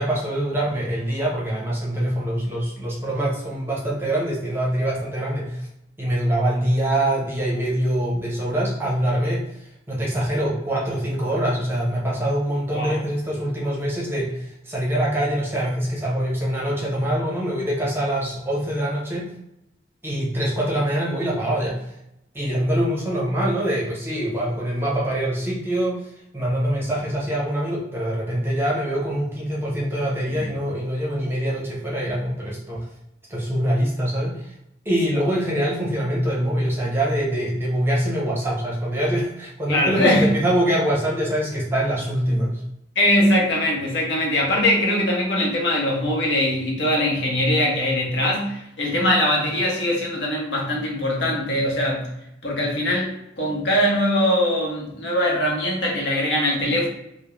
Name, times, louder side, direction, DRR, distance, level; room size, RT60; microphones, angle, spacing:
voice 1, 0.0-5.7 6.0-19.3 20.0-21.8 22.3-32.9 33.3-34.5 34.9-42.5, right 1 dB, 15° right, -5 dB, 0.7 m, -24 dB
voice 2, 39.7-40.3 43.0-52.1 52.4-56.9, left 1 dB, 65° left, -2 dB, 0.8 m, -21 dB
2.4 x 2.0 x 3.0 m, 0.83 s
head